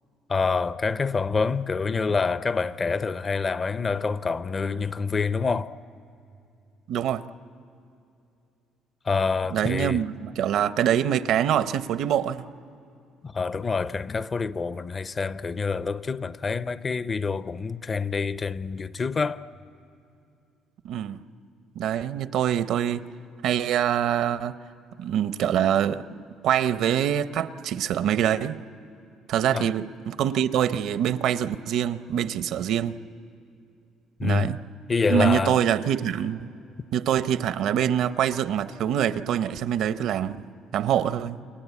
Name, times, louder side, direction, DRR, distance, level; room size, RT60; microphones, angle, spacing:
voice 1, 0.3-5.7 9.0-10.0 13.2-19.4 29.5-29.7 34.2-34.6 34.9-35.6, left 4 dB, 30° left, 0.5 m, -26 dB
voice 2, 6.9-7.3 9.5-12.4 20.8-21.2 21.8-23.0 23.4-24.5 25.0-26.0 26.4-28.6 29.3-33.0 34.2-34.6 35.1-36.5 36.9-40.4 40.7-41.4, right 10 dB, 70° right, 0.7 m, -24 dB
29.0 x 23.0 x 8.3 m
cardioid pair, 120°, 0 cm